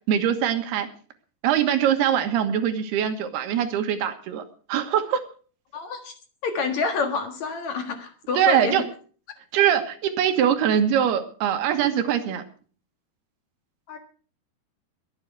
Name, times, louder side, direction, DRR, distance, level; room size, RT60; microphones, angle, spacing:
voice 1, 0.1-0.9 1.4-5.2 8.4-8.8 9.5-12.4, right 9 dB, 85° right, 7 dB, 3.5 m, -22 dB
voice 2, 5.7-6.1 6.4-8.8 13.9-14.0, left 5 dB, 55° left, 6 dB, 2.5 m, -28 dB
22.5 x 8.7 x 4.7 m, 0.41 s
omnidirectional pair, 4.5 m